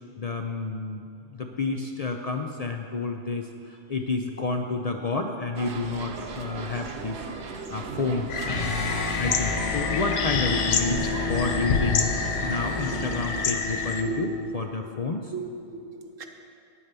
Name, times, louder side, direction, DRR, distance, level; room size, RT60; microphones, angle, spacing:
voice 1, 0.2-7.2 7.5-8.7 9.2-12.1 12.4-15.3, left 3 dB, 50° left, 3 dB, 0.4 m, -30 dB
sound 1, 5.6-13.5, right 4 dB, 65° right, 1.0 m, -37 dB
sound 2, 8.3-14.0, left 5 dB, 70° left, 1.1 m, -28 dB
sound 3, 8.4-14.5, left 3 dB, 30° left, 0.9 m, -32 dB
voice 2, 12.4-14.2 15.0-16.3, right 5 dB, 80° right, 4 dB, 1.3 m, -39 dB
9.1 x 8.5 x 6.8 m, 2.5 s
omnidirectional pair, 1.3 m